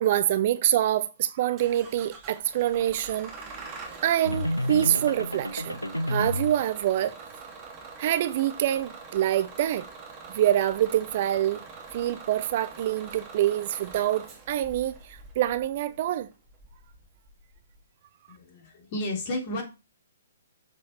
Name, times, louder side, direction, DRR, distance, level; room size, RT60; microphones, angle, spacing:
voice 1, 0.0-3.7 4.0-5.8 6.1-7.1 8.0-9.8 10.3-11.6 11.9-16.3, right 12 dB, 40° right, 0.6 m, -26 dB
Bus / Engine starting, 1.6-17.8, right 4 dB, 25° right, 2.5 m, -45 dB
sound 1, 4.2-6.6, left 1 dB, 85° left, 0.8 m, -30 dB
voice 2, 18.3-19.6, left 1 dB, 35° left, 3.5 m, -32 dB
7.5 x 7.2 x 4.5 m
figure-of-eight pair, 125°, 0 cm